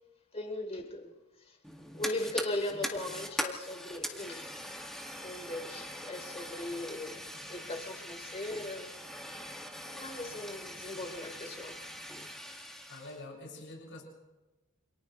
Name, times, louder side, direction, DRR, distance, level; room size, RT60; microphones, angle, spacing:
voice 1, 0.3-1.1 1.4-1.6 1.9-4.5 5.2-7.2 7.5-9.0 9.8-11.8, left 2 dB, 30° left, 2 dB, 4.2 m, -38 dB
Fire, 1.6-13.2, equal, ahead, 2.1 m, -42 dB
voice 2, 12.9-14.0, left 2 dB, 60° left, -1 dB, 7.0 m, -46 dB
29.5 x 27.5 x 3.3 m, 1.1 s
head